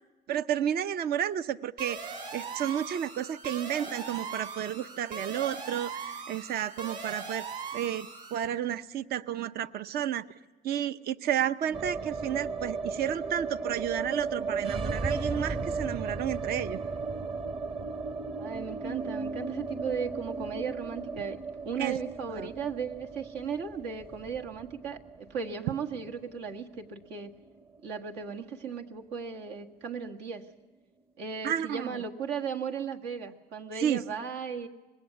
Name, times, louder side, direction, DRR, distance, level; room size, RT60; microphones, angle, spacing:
voice 1, 0.3-2.0 2.3-7.5 7.7-10.2 10.6-16.8 21.8-22.0 22.3-22.5 31.4-32.0 33.7-34.0, right 10 dB, 65° right, 13 dB, 0.7 m, -31 dB
sound 1, 1.8-8.4, right 5 dB, 50° right, 6.1 m, -40 dB
sound 2, 11.7-27.8 28.1-28.2 28.5-29.2, right 4 dB, 35° right, 1.0 m, -36 dB
voice 2, 18.4-27.3 27.8-30.5 31.2-34.7, right 6 dB, 85° right, 2 dB, 1.7 m, -36 dB
25.0 x 20.5 x 8.3 m, 1.1 s
cardioid pair, 110°, 17 cm